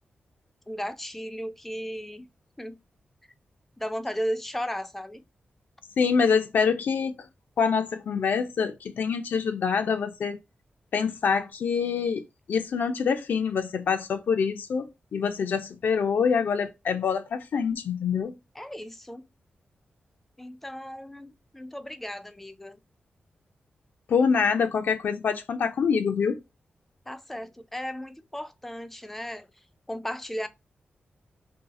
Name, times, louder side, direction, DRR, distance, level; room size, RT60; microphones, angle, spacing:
voice 1, 0.7-2.3 2.6-2.8 3.8-5.2 18.5-19.2 20.4-22.8 27.1-29.5 29.9-30.5, equal, 5° left, 0.3 m, -35 dB
voice 2, 6.0-7.3 7.6-10.4 10.9-18.3 24.1-26.4, left 6 dB, 70° left, 0.4 m, -25 dB
2.7 x 2.3 x 3.6 m
wide cardioid pair, 175°, 3 cm